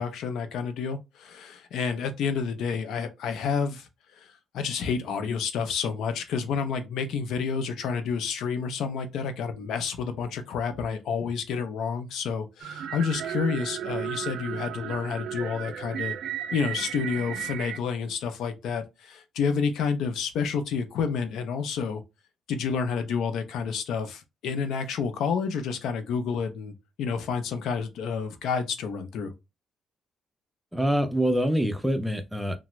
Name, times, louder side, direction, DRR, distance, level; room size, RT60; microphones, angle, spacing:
voice 1, 0.0-3.9 4.2-4.3 4.5-16.2 16.5-22.0 22.5-29.3, left 6 dB, 80° left, 0.5 m, -29 dB
sound 1, 12.6-17.8, right 10 dB, 70° right, 0.3 m, -34 dB
voice 2, 30.7-32.6, equal, 5° right, 0.5 m, -25 dB
3.3 x 2.0 x 3.0 m
cardioid pair, 90°, 0 cm